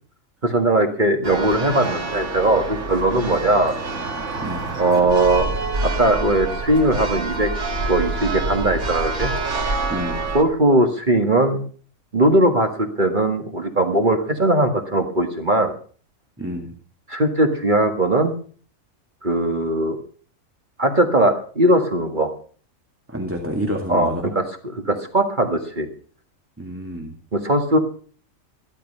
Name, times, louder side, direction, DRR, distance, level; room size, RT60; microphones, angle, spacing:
voice 1, 0.4-3.7 4.8-5.5 5.8-7.5 7.9-9.8 10.3-11.6 12.1-15.7 17.1-18.3 19.2-20.0 20.8-22.3 23.9-24.4 24.9-25.9 27.3-27.8, right 1 dB, 35° right, 4 dB, 1.8 m, -19 dB
Church bell, 1.2-10.4, right 3 dB, 60° right, 2.3 m, -27 dB
voice 2, 9.9-10.3 16.4-16.7 23.1-24.3 26.6-27.2, equal, 10° right, 2 dB, 2.1 m, -29 dB
15.0 x 12.5 x 5.5 m, 0.44 s
omnidirectional pair, 1.4 m